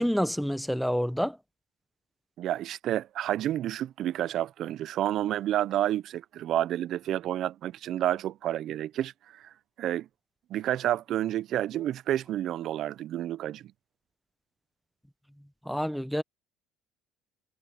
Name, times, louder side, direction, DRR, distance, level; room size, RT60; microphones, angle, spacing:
voice 1, 0.0-1.4 15.7-16.2, equal, ahead, 0.7 m, -28 dB
voice 2, 2.4-9.5 9.8-10.1 10.5-13.6, right 12 dB, 45° right, 0.3 m, -30 dB
cardioid pair, 160°, 0 cm